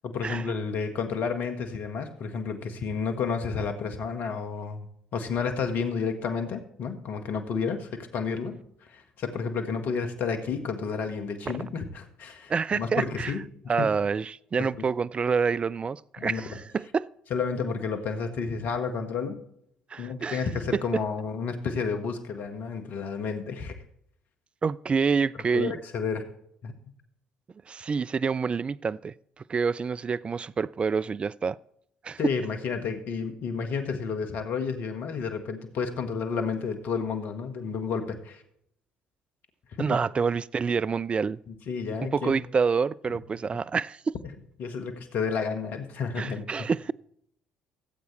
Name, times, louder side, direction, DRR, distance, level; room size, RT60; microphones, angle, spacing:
voice 1, 0.0-4.9 5.1-8.6 8.9-13.9 14.6-14.8 16.2-16.4 17.3-19.4 20.0-23.8 25.5-26.2 26.6-26.8 32.2-38.4 39.8-40.0 41.5-42.3 44.6-46.4, left 5 dB, 60° left, 1.5 m, -31 dB
voice 2, 12.5-13.3 13.7-17.1 19.9-20.5 20.7-21.0 24.6-25.7 27.7-31.6 32.0-32.3 39.8-41.4 42.1-44.2 46.2-46.9, right 5 dB, 30° right, 0.3 m, -27 dB
17.0 x 8.1 x 3.2 m
hypercardioid pair, 55°, 4 cm